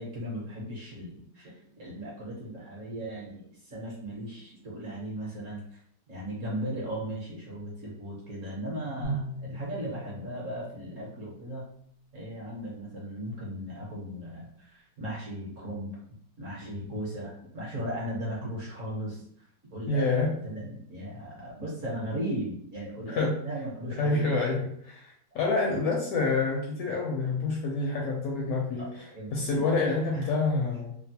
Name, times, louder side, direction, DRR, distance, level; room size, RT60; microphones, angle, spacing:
voice 1, 0.0-5.8 6.1-11.6 12.1-16.0 16.4-19.5 19.7-20.1 20.4-24.3 28.8-28.9 29.1-29.6 30.1-30.3, right 1 dB, 55° right, -5 dB, 1.0 m, -37 dB
sound 1, 9.0-12.3, left 2 dB, 85° right, 0.6 m, -43 dB
voice 2, 19.9-20.3 23.1-23.3 24.0-30.9, left 3 dB, 70° left, -1 dB, 0.9 m, -28 dB
3.0 x 2.0 x 2.7 m, 0.67 s
omnidirectional pair, 1.9 m